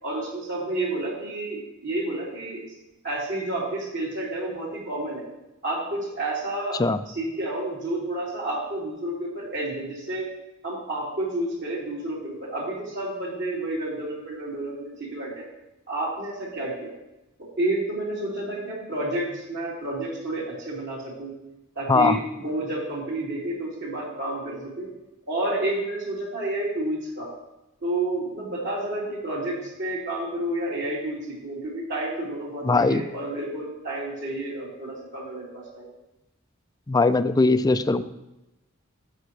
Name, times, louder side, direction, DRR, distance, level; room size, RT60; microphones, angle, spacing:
voice 1, 0.0-2.6 3.0-5.2 5.6-6.8 7.1-10.3 10.6-15.5 15.9-16.9 17.6-21.3 21.8-24.9 25.3-27.3 27.8-35.9, right 1 dB, 60° right, -6 dB, 3.9 m, -30 dB
voice 2, 21.9-22.2 32.6-33.1 36.9-38.0, left 3 dB, 20° left, 12 dB, 0.4 m, -20 dB
13.0 x 8.4 x 3.3 m, 0.96 s
head